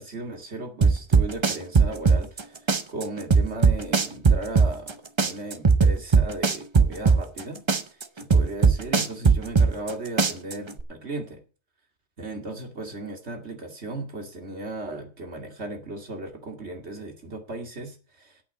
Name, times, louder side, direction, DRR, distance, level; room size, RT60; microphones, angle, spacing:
voice 1, 0.0-7.6 8.2-11.4 12.2-18.3, right 2 dB, 70° right, 4 dB, 2.6 m, -36 dB
sound 1, 0.8-2.4 2.7-4.9 5.2-7.4 7.7-9.9 10.2-10.8, right 5 dB, 30° right, 0.7 m, -18 dB
8.6 x 8.5 x 8.2 m, 0.36 s
omnidirectional pair, 1.2 m